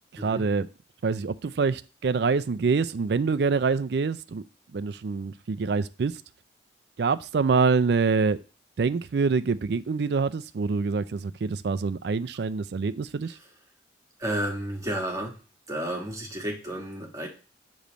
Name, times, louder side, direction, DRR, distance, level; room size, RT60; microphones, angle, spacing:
voice 1, 0.1-0.7 1.0-4.4 4.7-6.1 7.0-8.4 8.8-13.3, right 4 dB, 60° right, 0.4 m, -25 dB
voice 2, 14.2-15.4 15.7-17.3, right 1 dB, 20° right, 1.4 m, -31 dB
6.8 x 3.1 x 5.0 m
head